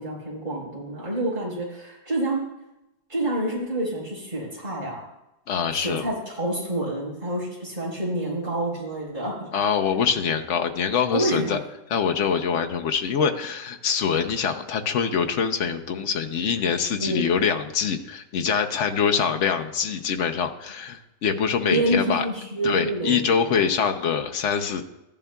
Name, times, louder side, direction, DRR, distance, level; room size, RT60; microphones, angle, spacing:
voice 1, 0.0-2.4 3.1-5.0 5.7-9.5 11.1-11.6 17.0-17.3 21.7-23.2, right 1 dB, 30° right, -5 dB, 4.6 m, -27 dB
voice 2, 5.5-6.1 9.5-11.6 11.9-22.2 22.6-24.8, left 6 dB, 55° left, 5 dB, 0.9 m, -24 dB
14.5 x 11.0 x 2.3 m, 0.93 s
omnidirectional pair, 1.8 m